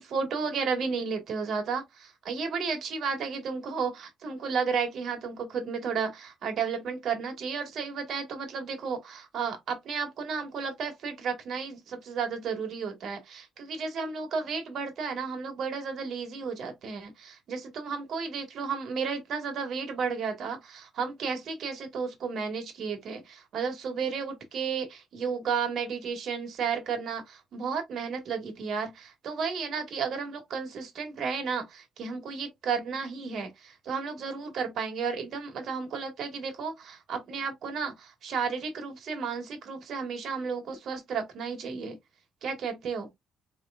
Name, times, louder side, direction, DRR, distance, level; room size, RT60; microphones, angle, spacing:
voice 1, 0.0-42.0 42.4-43.1, right 5 dB, 65° right, 1.6 m, -33 dB
4.5 x 3.3 x 2.4 m
cardioid pair, 90°, 0 cm